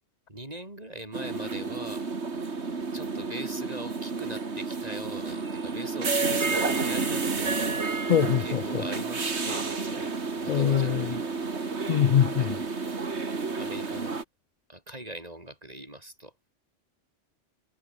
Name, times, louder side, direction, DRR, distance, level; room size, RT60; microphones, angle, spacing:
voice 1, 0.3-2.1 2.9-8.1 8.4-11.4 12.4-12.7 13.6-14.2 14.7-16.3, right 1 dB, 35° right, 5.3 m, -41 dB
sound 1, 1.1-14.2, right 4 dB, 70° right, 2.5 m, -30 dB
voice 2, 8.1-8.8 10.5-11.1 11.9-12.6, left 9 dB, 60° left, 0.4 m, -23 dB
omnidirectional pair, 1.2 m